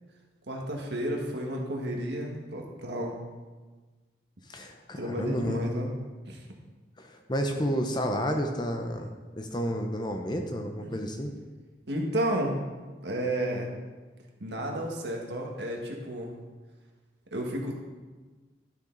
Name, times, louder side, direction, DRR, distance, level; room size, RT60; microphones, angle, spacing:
voice 1, 0.5-3.2 4.9-5.9 6.3-6.4 10.8-10.9 11.9-12.6 13.0-13.7 14.4-16.3 17.3-17.7, right 1 dB, 70° right, 0 dB, 1.6 m, -32 dB
voice 2, 4.5-5.7 7.0-11.3, equal, 25° left, 4 dB, 0.7 m, -31 dB
11.5 x 6.5 x 3.9 m, 1.3 s
head